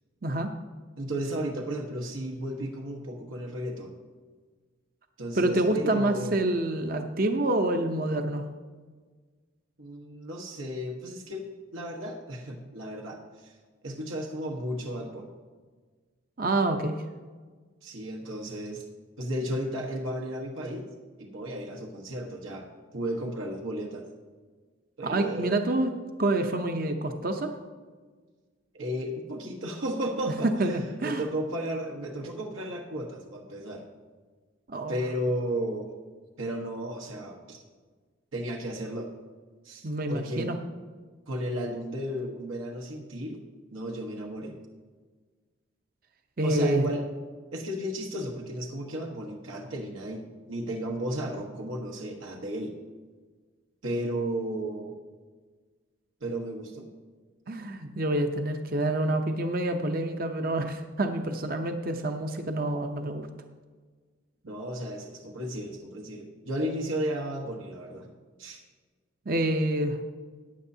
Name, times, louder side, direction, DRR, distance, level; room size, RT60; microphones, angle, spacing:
voice 1, 1.0-4.0 5.2-6.5 9.8-11.4 11.7-13.5 13.8-15.3 17.8-18.8 19.2-20.9 21.2-22.7 22.9-24.1 25.0-25.6 28.7-33.8 34.9-35.9 36.4-37.6 38.3-39.1 39.6-40.5 41.3-43.4 43.7-44.6 46.4-47.0 47.5-52.7 53.8-54.9 56.2-56.9 64.4-68.1 68.4-68.6, right 1 dB, 85° right, 0 dB, 1.2 m, -34 dB
voice 2, 5.4-8.5 16.4-17.0 25.0-25.9 26.2-27.6 30.4-31.2 34.7-35.0 39.8-40.6 46.4-46.8 57.5-63.3 69.3-70.0, right 1 dB, 45° right, 6 dB, 0.7 m, -27 dB
15.0 x 9.9 x 2.8 m, 1.4 s
head